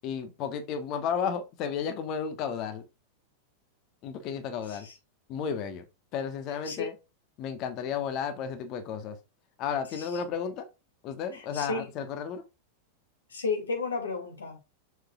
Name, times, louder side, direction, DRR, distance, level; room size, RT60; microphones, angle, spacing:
voice 1, 0.0-2.8 4.0-4.9 5.3-5.8 6.1-6.9 7.4-9.2 9.6-10.7 11.0-12.4, left 7 dB, 40° left, 1.3 m, -33 dB
voice 2, 11.3-11.9 13.3-14.6, left 4 dB, 70° left, 2.4 m, -33 dB
7.0 x 6.4 x 2.4 m
figure-of-eight pair, 90°, 0 cm